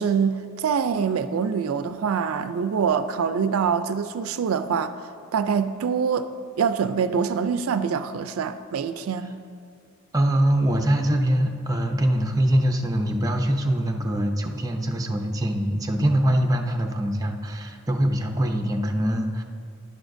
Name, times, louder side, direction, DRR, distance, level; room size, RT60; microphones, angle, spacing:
voice 1, 0.0-5.0 5.3-6.3 6.6-9.3, right 6 dB, 85° right, 11 dB, 0.4 m, -24 dB
voice 2, 10.1-19.4, right 1 dB, 15° right, 3 dB, 0.6 m, -23 dB
11.0 x 10.5 x 2.6 m, 2.2 s
head